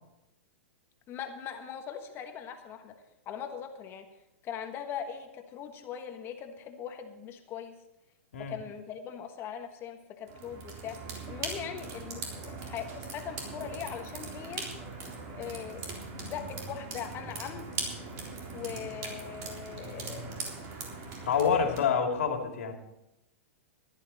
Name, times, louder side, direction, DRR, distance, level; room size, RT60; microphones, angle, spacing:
voice 1, 1.1-3.0 3.2-4.1 4.4-7.7 8.4-11.0 11.3-14.7 15.3-15.9 16.2-17.7 18.5-20.5, left 8 dB, 30° left, 6 dB, 1.4 m, -40 dB
sound 1, 10.3-21.8, right 4 dB, 40° right, 3.7 m, -40 dB
voice 2, 21.2-22.8, left 6 dB, 75° left, 3 dB, 2.5 m, -27 dB
15.5 x 11.5 x 4.1 m, 0.94 s
hypercardioid pair, 120°, 8 cm